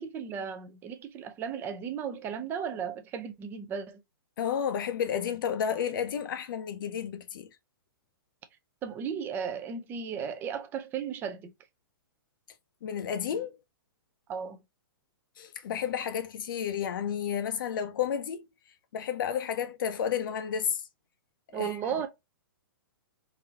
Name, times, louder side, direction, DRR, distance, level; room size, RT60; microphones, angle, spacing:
voice 1, 0.0-4.0 8.8-11.5 14.3-14.6 21.5-22.1, right 7 dB, 15° right, 0.5 m, -35 dB
voice 2, 4.4-7.5 12.8-13.6 15.4-18.4 18.9-20.8 21.5-21.8, left 8 dB, 60° left, 0.6 m, -31 dB
4.0 x 2.7 x 2.8 m
hypercardioid pair, 150°, 12 cm